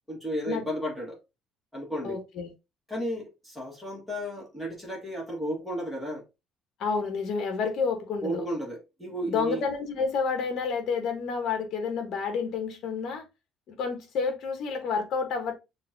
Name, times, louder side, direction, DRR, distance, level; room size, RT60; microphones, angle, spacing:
voice 1, 0.1-1.2 1.7-2.2 2.9-6.2 8.2-9.7, equal, ahead, 1.7 m, -33 dB
voice 2, 2.0-2.5 6.8-8.4 9.3-13.2 13.8-15.5, left 5 dB, 50° left, 1.2 m, -29 dB
6.6 x 2.6 x 2.7 m
cardioid pair, 165°, 0 cm